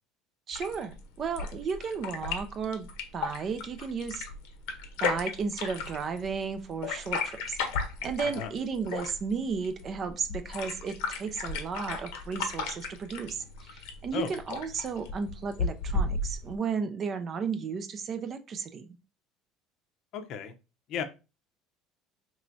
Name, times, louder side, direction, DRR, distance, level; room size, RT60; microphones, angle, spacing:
sound 1, 0.5-16.5, left 4 dB, 85° left, 0.8 m, -35 dB
voice 1, 0.5-2.9 3.1-4.3 5.0-7.6 8.0-19.0, right 5 dB, 30° right, 0.4 m, -34 dB
voice 2, 20.1-20.5 20.9-21.0, left 7 dB, 55° left, 0.6 m, -34 dB
4.5 x 3.0 x 2.6 m
cardioid pair, 150°, 0 cm